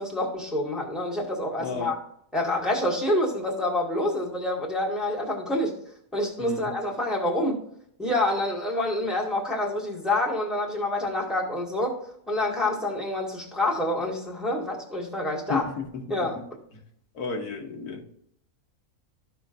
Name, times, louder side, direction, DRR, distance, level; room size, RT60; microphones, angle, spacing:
voice 1, 0.0-2.0 2.3-5.7 6.1-7.6 8.0-12.0 12.3-15.7 16.1-16.4, left 1 dB, ahead, -3 dB, 1.7 m, -27 dB
voice 2, 1.6-1.9 6.4-6.7 15.5-16.3 16.7-16.8 17.1-18.0, left 4 dB, 90° left, 3 dB, 1.7 m, -33 dB
13.5 x 5.8 x 2.5 m, 0.68 s
omnidirectional pair, 1.6 m